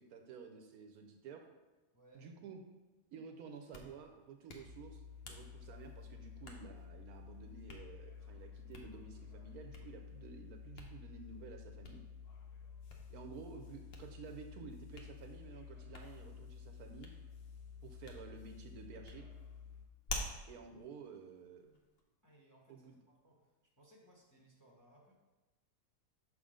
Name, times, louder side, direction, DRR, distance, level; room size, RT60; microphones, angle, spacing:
voice 1, 0.0-1.5 2.1-2.6 3.1-12.0 13.1-17.1 17.8-19.3 20.5-21.7 22.7-23.0, right 5 dB, 75° right, 5 dB, 1.0 m, -52 dB
voice 2, 1.9-2.3 22.2-25.1, right 1 dB, 15° left, -3 dB, 0.9 m, -65 dB
Hands, 3.5-22.0, left 1 dB, 50° left, 0.8 m, -53 dB
sound 1, 4.6-19.9, left 6 dB, 80° left, 1.2 m, -52 dB
6.3 x 3.7 x 5.0 m, 1.1 s
omnidirectional pair, 1.7 m